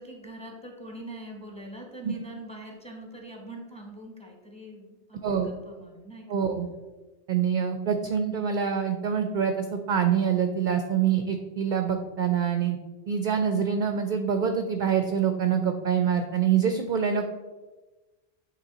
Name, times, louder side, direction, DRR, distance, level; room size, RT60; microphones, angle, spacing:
voice 1, 0.0-6.3, right 1 dB, 5° left, 1 dB, 0.9 m, -43 dB
voice 2, 6.3-6.7 7.3-12.8 13.1-17.3, right 7 dB, 60° right, 6 dB, 0.5 m, -25 dB
8.4 x 3.1 x 3.9 m, 1.2 s
omnidirectional pair, 1.2 m